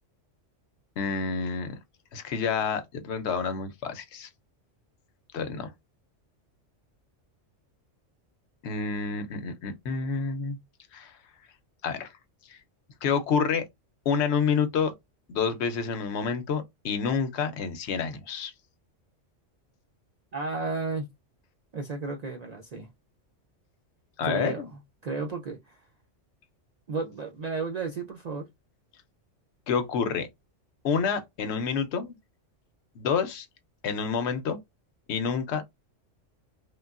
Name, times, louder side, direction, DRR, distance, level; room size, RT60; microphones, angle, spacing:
voice 1, 1.0-1.8 2.1-4.3 5.3-5.7 8.6-10.6 10.9-11.1 11.8-12.1 12.5-12.6 13.0-13.6 14.1-14.9 15.3-18.5 24.2-24.7 29.7-30.3 30.8-32.1 33.0-33.5 33.8-34.6 35.1-35.6, left 6 dB, 70° left, 0.8 m, -28 dB
voice 2, 20.3-21.1 21.7-22.9 24.2-25.8 26.9-28.5, right 4 dB, 65° right, 0.4 m, -33 dB
3.2 x 2.2 x 2.3 m
omnidirectional pair, 1.3 m